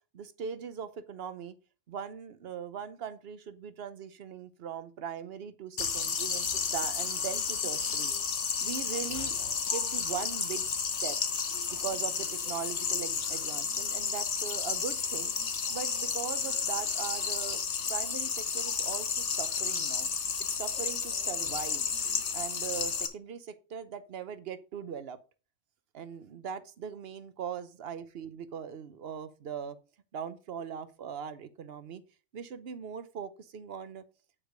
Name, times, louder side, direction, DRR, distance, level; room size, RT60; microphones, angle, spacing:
voice 1, 0.1-1.6 1.9-8.1 8.6-9.4 9.7-10.6 11.0-11.2 11.7-15.3 15.7-17.6 17.9-20.1 20.5-21.9 22.3-25.2 25.9-29.8 30.1-32.0 32.3-34.0, right 7 dB, 60° right, 1.0 m, -40 dB
sound 1, 5.8-23.1, left 6 dB, 70° left, 1.4 m, -32 dB
8.8 x 5.0 x 5.0 m
omnidirectional pair, 1.3 m